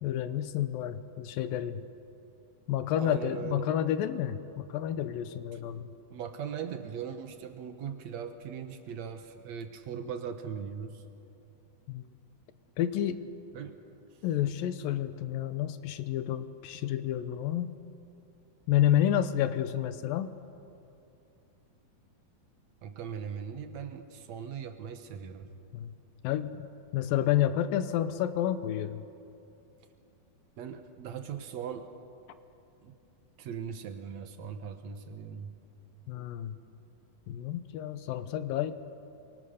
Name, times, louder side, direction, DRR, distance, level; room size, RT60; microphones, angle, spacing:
voice 1, 0.0-1.9 2.7-5.9 11.9-12.1 12.8-13.3 14.2-17.8 18.7-20.3 25.7-25.9 26.2-26.7 26.9-29.0 36.1-36.6 37.3-38.7, left 11 dB, 75° left, 12 dB, 2.5 m, -30 dB
voice 2, 2.9-3.8 6.1-11.0 13.5-13.8 22.8-25.5 30.6-31.9 32.8-32.9 33.4-35.6, right 7 dB, 60° right, 7 dB, 2.0 m, -39 dB
28.0 x 24.0 x 6.6 m, 2.7 s
omnidirectional pair, 4.2 m